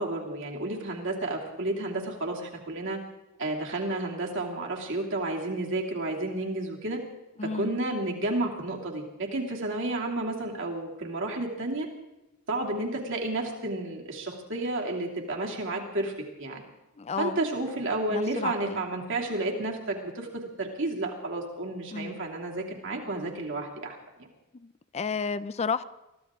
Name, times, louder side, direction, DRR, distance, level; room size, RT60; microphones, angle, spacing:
voice 1, 0.0-3.0 3.4-7.0 7.4-11.9 12.5-16.1 16.4-16.6 17.2-24.3, right 2 dB, 60° right, 0 dB, 2.8 m, -31 dB
voice 2, 7.4-7.8 17.0-17.4 18.1-18.8 21.9-22.2 24.5-25.8, left 5 dB, 30° left, 15 dB, 0.4 m, -32 dB
23.0 x 14.5 x 3.7 m, 0.96 s
head